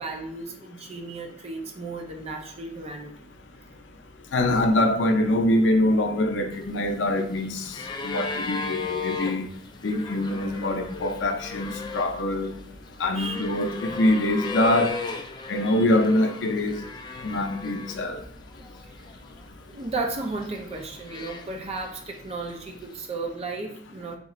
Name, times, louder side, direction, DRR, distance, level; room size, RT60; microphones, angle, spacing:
voice 1, 0.0-3.3 13.1-13.5 18.2-24.2, right 3 dB, 35° right, 0.5 m, -35 dB
voice 2, 4.3-7.7 8.0-9.5 9.8-12.5 13.0-15.0 15.5-16.8 17.2-18.2, left 1 dB, 75° left, 0.5 m, -24 dB
sound 1, 6.5-18.2 18.5-19.4 20.1-21.9 22.9-23.0, left 4 dB, 25° left, 0.3 m, -36 dB
3.6 x 2.4 x 3.0 m
head